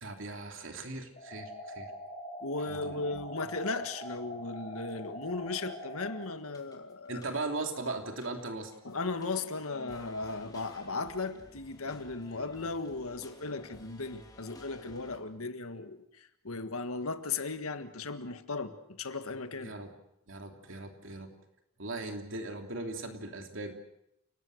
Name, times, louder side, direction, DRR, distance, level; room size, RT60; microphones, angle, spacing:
voice 1, 0.0-1.9 2.7-3.0 7.1-8.7 19.6-19.9 20.3-21.3 21.8-23.8, right 2 dB, 60° right, 3.1 m, -38 dB
sound 1, 1.2-6.2, equal, 35° left, 4.2 m, -43 dB
voice 2, 2.4-7.2 8.8-19.7, left 3 dB, 90° left, 1.6 m, -36 dB
sound 2, 4.9-5.1 5.5-6.1 6.4-7.7 8.0-15.2, left 1 dB, 20° left, 2.7 m, -55 dB
29.5 x 18.5 x 6.5 m
head